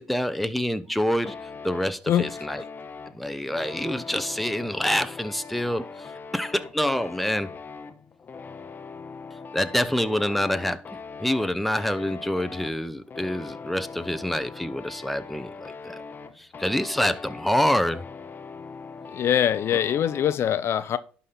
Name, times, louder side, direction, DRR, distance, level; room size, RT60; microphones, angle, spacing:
voice 1, 0.0-1.4 1.6-2.6 3.1-6.1 6.3-7.5 9.5-16.0 16.4-18.1 19.7-19.8, left 1 dB, ahead, 0.9 m, -26 dB
sound 1, 1.2-20.4, left 5 dB, 35° left, 0.9 m, -41 dB
voice 2, 19.1-21.0, left 10 dB, 50° left, 0.7 m, -23 dB
11.5 x 4.2 x 5.4 m
hypercardioid pair, 65°, 6 cm